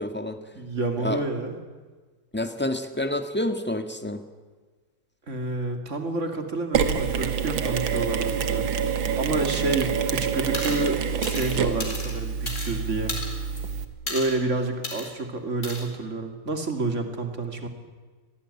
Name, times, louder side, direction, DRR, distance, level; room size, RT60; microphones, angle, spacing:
voice 1, 0.0-0.4 1.0-1.2 2.3-4.2, left 1 dB, 5° left, 8 dB, 1.5 m, -28 dB
voice 2, 0.5-1.6 5.3-8.7 9.2-13.1 14.1-17.7, right 2 dB, 35° right, 5 dB, 2.9 m, -29 dB
Mechanisms, 6.7-13.9, right 7 dB, 80° right, 2.2 m, -27 dB
sound 1, 10.5-10.9 11.2-12.7 13.1-13.6 14.1-14.4 14.8-15.1 15.6-15.8, left 2 dB, 35° left, 4.8 m, -34 dB
25.0 x 18.5 x 9.9 m, 1.4 s
omnidirectional pair, 2.1 m